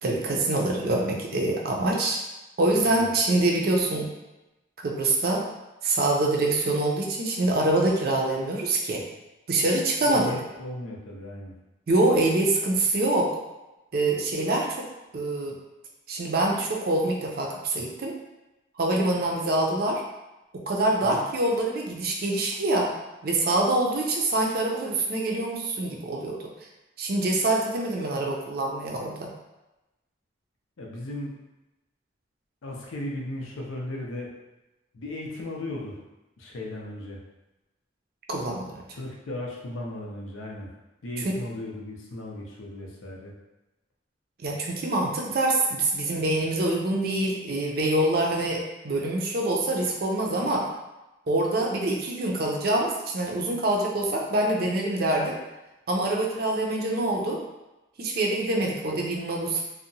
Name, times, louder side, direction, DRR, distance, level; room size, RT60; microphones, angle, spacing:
voice 1, 0.0-2.2 2.6-4.1 4.8-5.4 5.8-9.0 9.5-10.3 11.9-13.4 13.9-14.9 15.1-15.6 16.1-18.1 18.8-20.0 20.5-22.9 23.2-26.4 27.0-29.3 38.3-38.8 41.2-41.4 44.4-50.7 51.3-55.4 55.9-57.4 58.0-59.6, right 2 dB, 50° right, 0 dB, 0.4 m, -25 dB
voice 2, 10.0-11.5 21.0-21.2 30.8-31.4 32.6-34.3 34.9-36.0 36.4-37.2 38.9-40.7 41.0-43.4, left 1 dB, 90° left, -1 dB, 0.5 m, -36 dB
2.7 x 2.1 x 2.6 m, 1.0 s
head